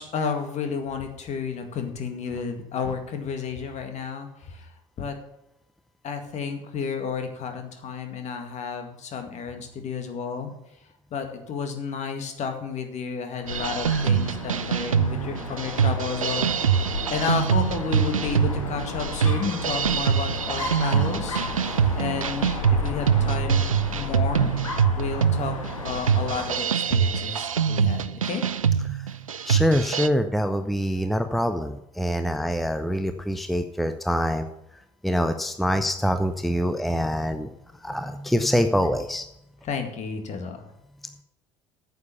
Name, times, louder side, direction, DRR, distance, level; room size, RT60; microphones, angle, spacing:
voice 1, 0.0-4.7 5.0-5.2 6.0-10.5 11.1-16.8 17.1-21.4 22.0-24.5 25.0-28.4 39.6-40.6, left 5 dB, 45° left, 6 dB, 2.0 m, -31 dB
Dog, 13.4-26.7, left 3 dB, 85° left, 2.0 m, -34 dB
sound 1, 13.5-30.1, right 7 dB, 90° right, 0.4 m, -24 dB
voice 2, 29.5-34.5 35.0-37.5 37.8-39.2, equal, ahead, 8 dB, 0.7 m, -25 dB
9.5 x 7.0 x 6.9 m, 0.82 s
figure-of-eight pair, 65°, 17 cm